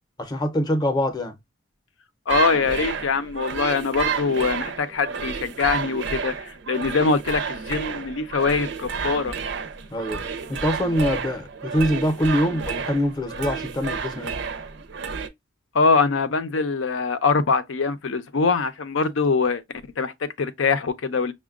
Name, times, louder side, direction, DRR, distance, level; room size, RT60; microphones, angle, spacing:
voice 1, 0.2-1.4 9.9-10.2 10.5-14.3, equal, 20° left, 0.6 m, -24 dB
voice 2, 2.3-9.3 15.7-19.6 20.0-21.3, left 4 dB, 85° left, 0.6 m, -23 dB
sound 1, 2.3-15.3, right 5 dB, 65° right, 0.5 m, -31 dB
6.0 x 2.2 x 2.3 m
head